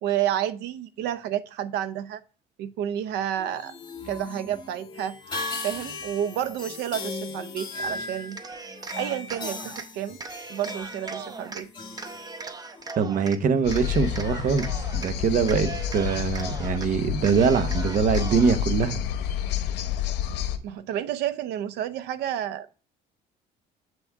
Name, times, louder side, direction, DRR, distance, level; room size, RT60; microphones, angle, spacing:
voice 1, 0.0-2.2 2.6-3.7 4.0-5.1 5.6-8.4 8.9-10.2 10.5-11.7 20.6-22.8, right 11 dB, 85° right, 0.6 m, -30 dB
sound 1, 3.4-12.9, left 3 dB, 25° left, 1.9 m, -37 dB
Cheering, 8.2-9.9 10.2-11.6 12.0-13.4 13.7-15.1 15.4-16.9 17.2-18.6, right 4 dB, 25° right, 0.7 m, -39 dB
voice 2, 13.0-14.7 14.9-19.0, right 6 dB, 50° right, 0.9 m, -23 dB
sound 2, 13.6-20.6, left 9 dB, 80° left, 0.7 m, -29 dB
7.7 x 3.6 x 4.5 m
cardioid pair, 110°, 17 cm